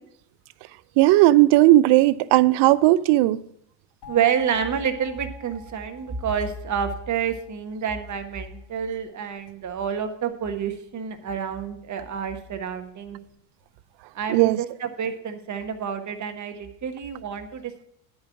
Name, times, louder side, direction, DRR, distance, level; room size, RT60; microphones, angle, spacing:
voice 1, 1.0-3.4 14.3-14.6, right 16 dB, 55° right, 0.6 m, -16 dB
sound 1, 4.0-8.8, equal, 55° left, 3.4 m, -47 dB
voice 2, 4.1-13.2 14.1-17.8, right 7 dB, 35° right, 1.5 m, -28 dB
9.9 x 5.6 x 7.1 m
supercardioid pair, 90°, 49 cm